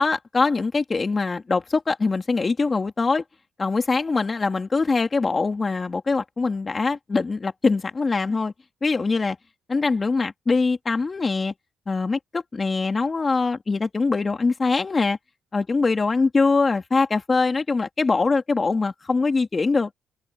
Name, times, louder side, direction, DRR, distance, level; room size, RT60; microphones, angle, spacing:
voice 1, 0.0-3.2 3.6-8.5 8.8-9.4 9.7-11.5 11.9-15.2 15.5-19.9, left 4 dB, 30° left, 2.9 m, -23 dB
cardioid pair, 90°, 0 cm